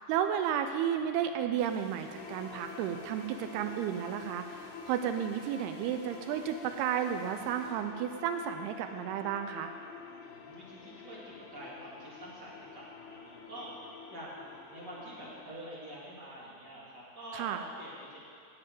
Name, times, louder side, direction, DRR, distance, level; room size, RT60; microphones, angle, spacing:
voice 1, 0.0-9.7 17.3-17.6, right 9 dB, 85° right, 7 dB, 2.6 m, -33 dB
sound 1, 1.6-7.7, right 1 dB, 50° right, 2.9 m, -56 dB
sound 2, 2.2-15.5, left 6 dB, 90° left, 2.7 m, -48 dB
voice 2, 10.2-18.2, right 1 dB, 30° right, -7 dB, 2.7 m, -46 dB
11.0 x 6.9 x 9.1 m, 2.4 s
omnidirectional pair, 4.6 m